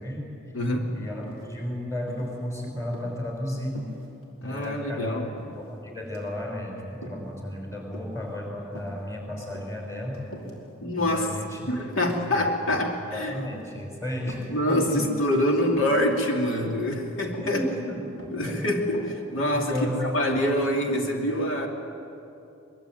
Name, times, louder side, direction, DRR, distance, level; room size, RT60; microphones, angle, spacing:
voice 1, 0.0-0.4 0.9-3.9 4.4-5.2 5.5-10.3 11.0-11.8 12.3-12.5 12.9-15.1 17.1-18.0 18.4-18.7 19.5-20.2, left 1 dB, 15° left, 0 dB, 5.9 m, -33 dB
voice 2, 0.5-0.9 4.4-5.3 10.8-11.3 11.7-13.4 14.5-17.6 18.3-19.7 20.0-21.7, left 1 dB, 60° left, 1 dB, 2.7 m, -25 dB
sound 1, 1.2-1.7 2.1-2.4 2.8-3.1 3.7-4.3 4.5-4.8 5.4-5.7 6.1-6.4 7.0-7.3 7.9-8.3 8.7-9.0 9.4-10.7 11.1-11.4 11.9-12.2 12.6-13.0 13.5-13.8 14.2-14.7 15.0-15.3 15.7-16.0 16.6-16.9 17.3-17.6 18.2-18.5 18.8-20.0, equal, 85° left, 5.1 m, -42 dB
23.5 x 22.5 x 9.3 m, 2.8 s
head